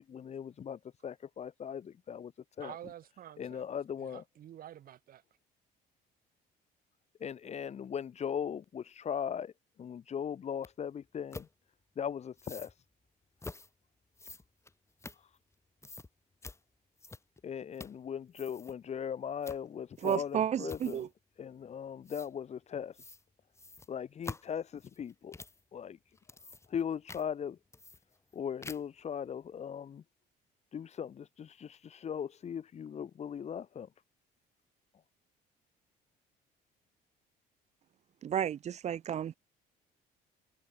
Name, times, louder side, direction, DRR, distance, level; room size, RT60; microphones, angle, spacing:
voice 1, 0.0-2.3 2.6-2.7 3.4-4.2 7.2-9.5 9.8-11.5 11.9-12.7 17.4-21.1 21.4-23.0 23.9-25.3 25.7-26.0 26.7-27.6 28.3-30.0 30.7-33.9, left 8 dB, 40° left, 1.3 m, -39 dB
voice 2, 2.6-3.6 4.0-5.2, right 11 dB, 60° right, 3.2 m, -49 dB
sound 1, 10.6-10.7 11.3-11.5 12.4-12.7 13.4-13.7 14.2-15.5 15.8-16.1 16.4-16.6 17.0-17.4 17.7-18.0 18.3-18.8 19.4-19.6 20.0-20.3 20.7-21.1 22.1-22.3 22.9-23.2 23.5-25.6 26.1-26.8 27.1-27.2 27.7-28.3 28.6-29.0, left 3 dB, 15° left, 4.2 m, -47 dB
voice 3, 20.0-21.1 38.2-39.4, right 9 dB, 40° right, 0.6 m, -32 dB
cardioid pair, 110°, 17 cm